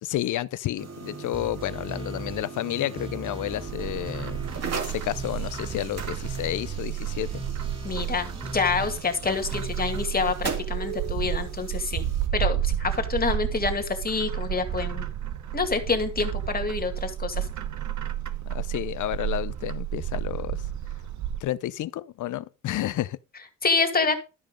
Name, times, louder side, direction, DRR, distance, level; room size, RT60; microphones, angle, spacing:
voice 1, 0.0-4.4 4.9-7.4 18.4-20.6 21.4-23.2, left 13 dB, 85° left, 0.6 m, -31 dB
sound 1, 0.8-12.3, right 5 dB, 55° right, 2.5 m, -40 dB
sound 2, 1.3-10.1, right 2 dB, 15° right, 1.2 m, -38 dB
Bird, 3.7-21.4, right 11 dB, 70° right, 1.1 m, -31 dB
voice 2, 7.8-12.0 12.3-15.1 15.5-17.5 23.6-24.2, left 4 dB, 30° left, 2.2 m, -27 dB
12.5 x 5.2 x 5.2 m
cardioid pair, 110°, 30 cm